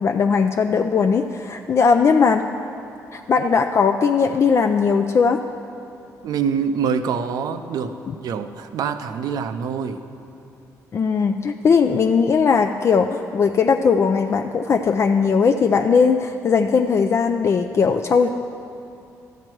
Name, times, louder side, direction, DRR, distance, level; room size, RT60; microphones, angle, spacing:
voice 1, 0.0-2.5 3.1-5.4 8.1-8.2 10.9-18.3, left 5 dB, 45° left, 6 dB, 0.4 m, -18 dB
voice 2, 6.2-10.0, right 6 dB, 75° right, 10 dB, 0.5 m, -25 dB
12.5 x 7.9 x 4.6 m, 2.7 s
cardioid pair, 85°, 7 cm